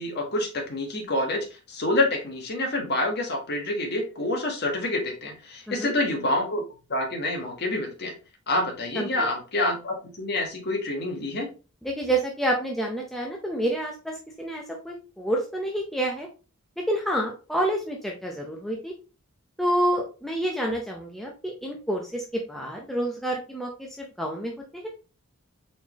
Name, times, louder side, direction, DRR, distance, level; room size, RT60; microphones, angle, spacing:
voice 1, 0.0-6.6 6.9-8.2 8.5-11.5, left 2 dB, 45° left, 2 dB, 1.2 m, -27 dB
voice 2, 9.0-9.3 11.8-16.3 16.9-18.9 19.6-24.9, right 1 dB, ahead, -1 dB, 0.6 m, -28 dB
4.4 x 4.0 x 2.9 m, 0.33 s
head